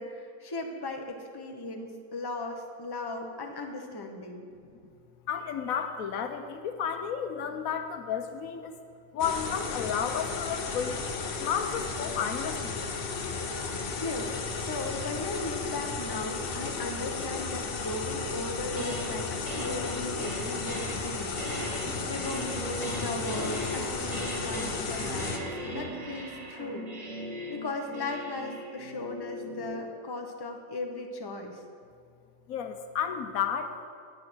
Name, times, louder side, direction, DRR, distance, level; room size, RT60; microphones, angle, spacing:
voice 1, 0.0-4.5 14.0-21.4 22.0-26.8 27.5-31.6, left 2 dB, 20° left, 3 dB, 0.9 m, -37 dB
voice 2, 5.3-8.7 9.1-11.1 11.4-12.8 32.5-33.9, left 7 dB, 85° left, 7 dB, 1.2 m, -32 dB
sound 1, 9.2-25.4, left 4 dB, 50° left, 0.9 m, -34 dB
sound 2, 18.5-19.2 19.5-29.9, right 1 dB, 30° right, 1.3 m, -38 dB
9.5 x 8.2 x 6.2 m, 2.3 s
omnidirectional pair, 1.4 m